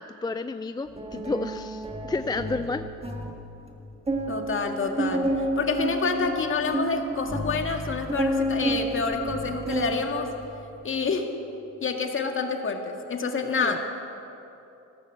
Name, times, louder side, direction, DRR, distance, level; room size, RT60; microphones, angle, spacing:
voice 1, 0.0-2.9 13.6-13.8, left 3 dB, 15° left, 10 dB, 0.4 m, -31 dB
sound 1, 1.0-3.4 3.7-3.8 4.1-10.1 10.4-10.8, right 1 dB, 20° right, 1.8 m, -30 dB
voice 2, 4.3-5.3 5.6-10.3 10.8-11.3 11.8-13.8, left 4 dB, 40° left, 4 dB, 1.8 m, -28 dB
15.0 x 12.0 x 7.3 m, 2.9 s
cardioid pair, 90°, 30 cm